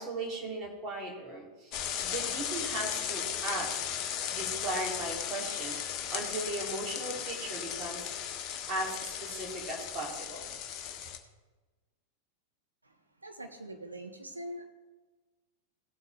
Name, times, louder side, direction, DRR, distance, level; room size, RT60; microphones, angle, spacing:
voice 1, 0.0-3.8 4.3-5.8 6.1-8.1 8.7-10.5, right 2 dB, 30° right, -1 dB, 3.4 m, -37 dB
sound 1, 1.7-11.2, left 9 dB, 35° left, 1.1 m, -36 dB
voice 2, 13.2-14.7, right 1 dB, 80° right, 4 dB, 1.4 m, -42 dB
17.0 x 8.1 x 3.5 m, 1.3 s
figure-of-eight pair, 90°, 0 cm